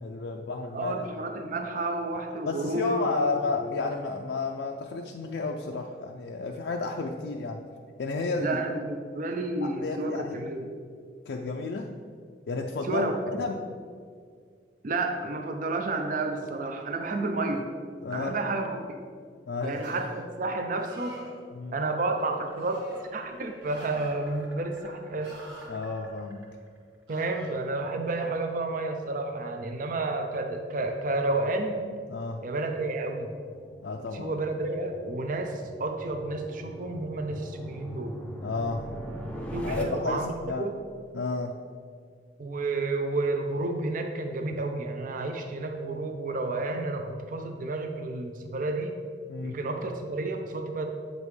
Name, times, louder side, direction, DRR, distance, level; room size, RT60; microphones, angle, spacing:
voice 1, 0.0-0.9 2.5-7.6 8.0-8.6 9.6-10.3 11.3-11.9 12.5-13.6 18.0-18.4 19.5-19.8 21.5-21.7 25.7-26.4 32.1-32.4 33.8-34.3 38.4-38.8 39.6-40.7 41.1-41.6 49.3-49.6, left 3 dB, 80° left, 1 dB, 0.4 m, -32 dB
voice 2, 0.7-3.3 8.4-10.7 12.9-13.1 14.8-17.7 18.1-19.0 19.6-21.2 21.7-22.8 23.1-25.3 27.1-31.8 32.4-33.3 34.1-38.1 39.5-40.7 42.4-48.9 49.4-50.9, right 2 dB, 50° right, 5 dB, 0.5 m, -31 dB
sound 1, 19.8-20.3 20.8-21.4 22.6-23.1 23.6-24.5 25.2-25.7 27.1-27.6, equal, 75° right, 1.3 m, -47 dB
sound 2, 22.0-27.0, right 1 dB, 10° right, 1.3 m, -53 dB
sound 3, 29.0-39.8, equal, 10° left, 0.6 m, -42 dB
7.8 x 5.2 x 3.2 m, 2.1 s
head